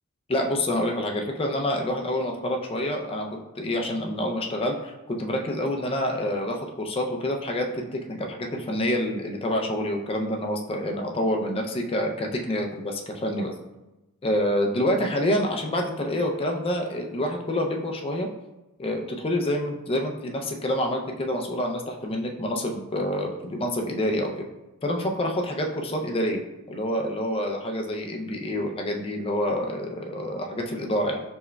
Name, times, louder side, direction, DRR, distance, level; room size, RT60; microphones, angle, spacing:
voice 1, 0.3-13.5 14.2-18.3 18.8-24.5 24.8-26.4 26.7-31.2, left 1 dB, 25° left, 2 dB, 0.4 m, -27 dB
4.4 x 4.2 x 2.2 m, 1.0 s
head